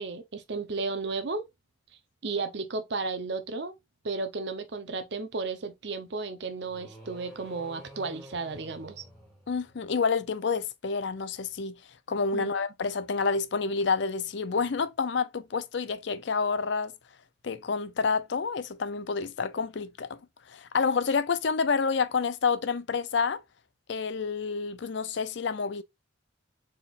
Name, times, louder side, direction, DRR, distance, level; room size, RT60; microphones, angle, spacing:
voice 1, 0.0-1.5 2.2-3.7 4.0-9.0 12.3-12.6, right 3 dB, 60° right, 0.7 m, -33 dB
sound 1, 6.6-10.0, equal, ahead, 1.8 m, -49 dB
voice 2, 9.5-11.8 12.1-16.9 17.4-20.2 20.5-23.4 23.9-25.8, left 5 dB, 65° left, 0.5 m, -28 dB
4.4 x 3.7 x 2.4 m
head